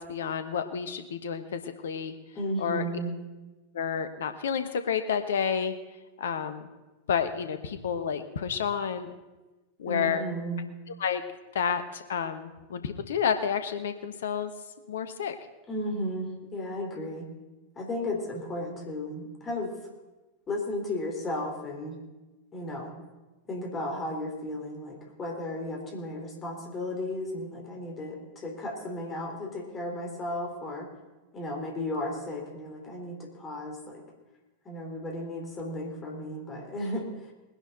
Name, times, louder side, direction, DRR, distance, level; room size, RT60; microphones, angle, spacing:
voice 1, 0.0-2.1 2.6-2.8 3.7-5.7 6.2-6.6 7.1-9.1 9.8-10.2 11.0-11.2 11.5-14.5 14.9-15.3, left 7 dB, 60° left, 10 dB, 1.2 m, -30 dB
voice 2, 2.4-3.1 9.9-10.6 15.7-17.3 17.8-19.7 20.5-22.0 22.5-22.9 23.5-30.9 31.3-34.0 34.7-37.3, left 1 dB, 20° left, 1 dB, 3.5 m, -34 dB
20.0 x 10.5 x 4.0 m, 1.1 s
figure-of-eight pair, 90°, 0 cm